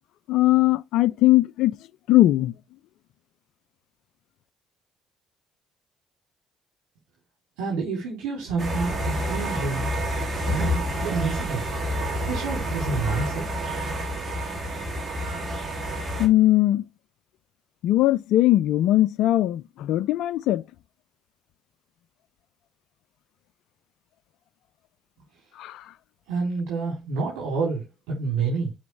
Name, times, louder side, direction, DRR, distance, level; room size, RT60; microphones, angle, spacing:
voice 1, 0.3-1.8 2.1-2.5 16.2-16.9 17.8-20.6 25.6-25.9, left 15 dB, 70° left, 0.3 m, -20 dB
voice 2, 7.6-9.9 10.4-11.6 12.3-13.6 26.3-28.7, right 4 dB, 75° right, 3.3 m, -28 dB
sound 1, 8.6-16.3, equal, 35° right, 2.8 m, -28 dB
7.0 x 5.1 x 3.3 m
hypercardioid pair, 55°, 0 cm